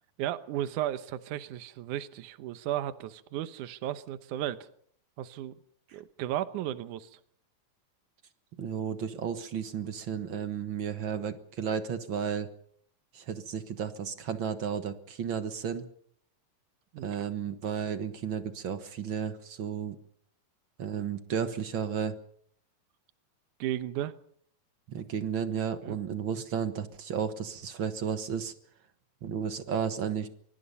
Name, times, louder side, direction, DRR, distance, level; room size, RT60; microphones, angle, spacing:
voice 1, 0.2-4.7 5.2-5.5 5.9-7.2 16.9-17.3 23.6-24.1 25.8-26.0, right 12 dB, 75° right, 12 dB, 2.4 m, -34 dB
voice 2, 8.6-12.5 13.1-15.9 17.0-20.0 20.8-22.2 24.9-28.5 29.2-30.3, right 7 dB, 55° right, 10 dB, 1.5 m, -33 dB
25.0 x 23.5 x 5.5 m, 0.63 s
omnidirectional pair, 3.8 m